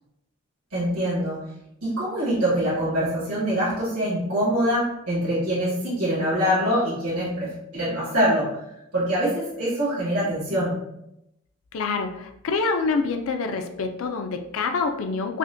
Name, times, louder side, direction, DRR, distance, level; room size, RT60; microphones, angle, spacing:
voice 1, 0.7-1.4 1.8-8.7 8.9-10.8, equal, 85° right, -9 dB, 1.3 m, -24 dB
voice 2, 11.7-15.4, left 4 dB, 70° left, 6 dB, 0.4 m, -26 dB
4.9 x 2.1 x 2.6 m, 0.82 s
head